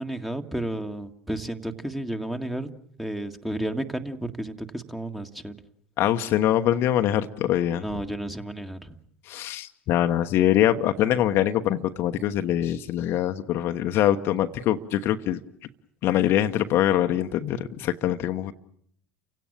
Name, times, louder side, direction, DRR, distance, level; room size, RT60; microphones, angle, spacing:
voice 1, 0.0-2.7 3.0-5.5 7.7-9.0, right 1 dB, 5° right, 6 dB, 1.8 m, -32 dB
voice 2, 6.0-7.8 9.3-15.4 16.0-18.5, left 12 dB, 50° left, 7 dB, 1.1 m, -23 dB
30.0 x 17.0 x 8.8 m, 0.67 s
figure-of-eight pair, 70°, 5 cm